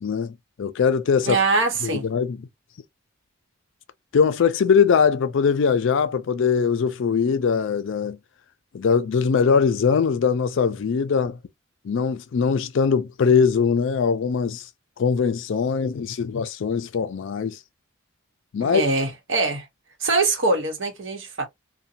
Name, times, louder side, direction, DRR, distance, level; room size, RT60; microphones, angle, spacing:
voice 1, 0.0-1.4 1.8-2.4 4.1-8.2 8.7-11.4 11.8-14.6 15.0-17.6 18.5-18.8, left 6 dB, 60° left, 0.4 m, -21 dB
voice 2, 1.3-2.1 18.6-19.7 20.0-21.5, right 3 dB, 60° right, 1.0 m, -23 dB
2.6 x 2.2 x 2.7 m
head